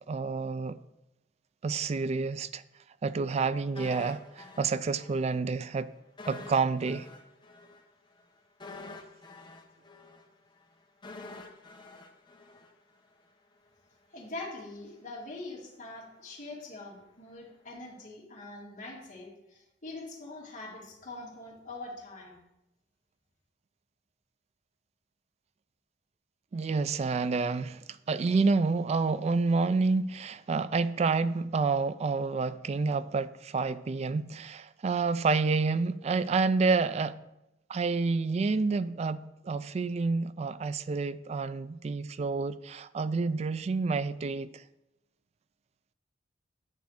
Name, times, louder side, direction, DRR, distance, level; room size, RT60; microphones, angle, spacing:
voice 1, 0.1-0.8 1.6-2.6 3.0-5.9 6.3-7.1 26.5-27.8 28.1-37.2 37.7-44.6, right 4 dB, 35° right, 0.3 m, -29 dB
sound 1, 3.8-5.4 5.7-5.8 6.2-13.3 13.6-13.7, left 3 dB, 25° left, 0.7 m, -47 dB
voice 2, 14.1-22.4, left 2 dB, 45° left, 2.0 m, -43 dB
9.3 x 3.5 x 6.3 m
head